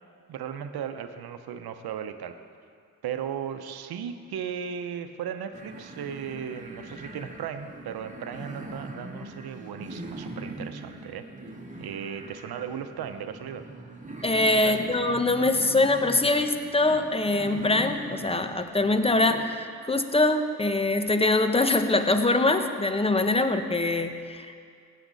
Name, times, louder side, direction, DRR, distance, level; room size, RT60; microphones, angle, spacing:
voice 1, 0.3-2.3 3.0-11.3 11.8-13.6 14.6-14.9, right 8 dB, 70° right, 9 dB, 0.9 m, -36 dB
sound 1, 5.5-19.5, right 1 dB, 20° right, 1.9 m, -41 dB
voice 2, 14.2-24.6, left 2 dB, 15° left, 8 dB, 1.1 m, -23 dB
17.0 x 9.4 x 4.0 m, 2.2 s
supercardioid pair, 45°, 38 cm